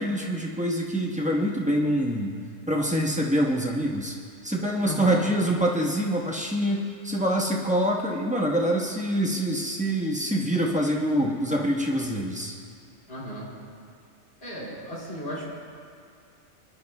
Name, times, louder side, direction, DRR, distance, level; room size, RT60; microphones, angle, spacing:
voice 1, 0.0-2.3 2.7-4.2 4.4-12.5, equal, 5° right, -3 dB, 1.2 m, -25 dB
voice 2, 4.8-5.3 13.1-13.5 14.4-15.5, equal, 45° left, -6 dB, 3.7 m, -35 dB
27.0 x 11.0 x 2.3 m, 2.3 s
omnidirectional pair, 1.4 m